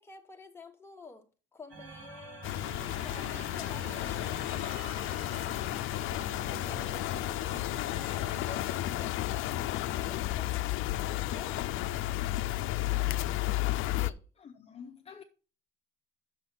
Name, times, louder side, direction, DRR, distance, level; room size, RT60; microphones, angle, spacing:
voice 1, 0.0-4.7 6.5-11.8 13.9-14.3, left 4 dB, 10° left, 1.1 m, -50 dB
sound 1, 1.7-8.6, right 3 dB, 65° right, 2.5 m, -47 dB
sound 2, 2.4-14.1, left 15 dB, 75° left, 0.5 m, -32 dB
voice 2, 14.6-15.2, left 7 dB, 30° left, 0.7 m, -48 dB
6.5 x 6.0 x 5.8 m
cardioid pair, 135°, 21 cm